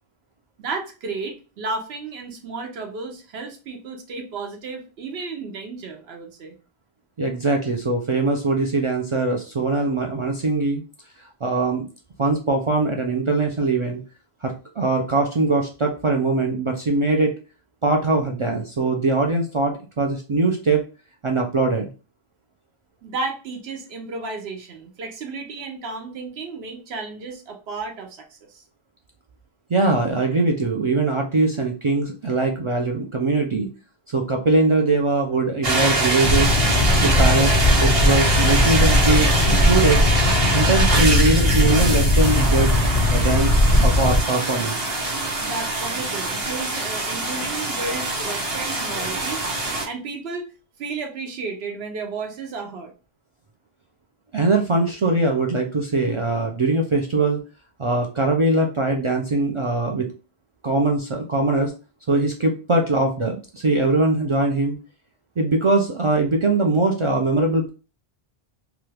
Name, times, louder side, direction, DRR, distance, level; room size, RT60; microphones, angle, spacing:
voice 1, 0.6-6.5 23.0-28.6 45.4-50.5 50.8-52.9, right 3 dB, 80° right, 3 dB, 0.9 m, -33 dB
voice 2, 7.2-10.8 11.4-11.9 12.2-14.0 14.4-17.3 17.8-20.8 21.2-21.9 29.7-33.7 34.1-36.5 37.0-40.0 40.5-42.7 43.1-43.5 43.8-44.9 54.3-57.4 57.8-60.1 60.6-61.7 62.1-64.8 65.4-67.7, right 3 dB, 60° right, 2 dB, 0.3 m, -21 dB
sound 1, 35.6-49.9, right 2 dB, 40° right, 0.8 m, -23 dB
Boat Water vehicle, 36.2-44.2, left 2 dB, 35° left, 0.5 m, -19 dB
2.9 x 2.3 x 3.2 m, 0.33 s
omnidirectional pair, 1.0 m